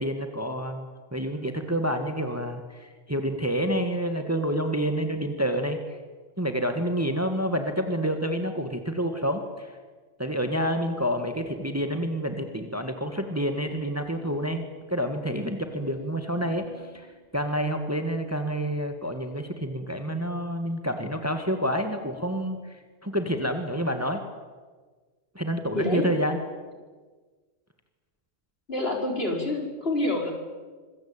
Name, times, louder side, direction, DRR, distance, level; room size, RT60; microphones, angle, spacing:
voice 1, 0.0-6.0 6.4-9.7 10.2-17.1 17.3-24.2 25.4-26.4, equal, 10° right, 6 dB, 1.9 m, -28 dB
proba hangok, 11.2-12.2 12.5-12.6 13.4-14.7 15.7-17.7, left 1 dB, 35° left, 4.9 m, -48 dB
voice 2, 25.7-26.1 28.7-30.3, left 2 dB, 50° left, 2 dB, 4.7 m, -27 dB
26.0 x 23.0 x 8.9 m, 1.4 s
omnidirectional pair, 1.3 m